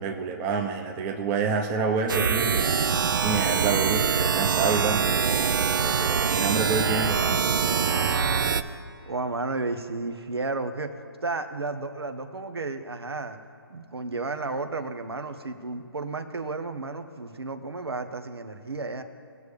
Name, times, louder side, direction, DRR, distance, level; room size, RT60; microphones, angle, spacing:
voice 1, 0.0-7.5, right 5 dB, 15° right, 2 dB, 0.7 m, -28 dB
sound 1, 2.1-8.6, right 6 dB, 55° right, 0.6 m, -24 dB
voice 2, 7.7-8.8 9.1-13.4 13.7-19.0, right 3 dB, 85° right, 7 dB, 1.1 m, -33 dB
20.0 x 7.1 x 3.3 m, 2.3 s
hypercardioid pair, 150°, 13 cm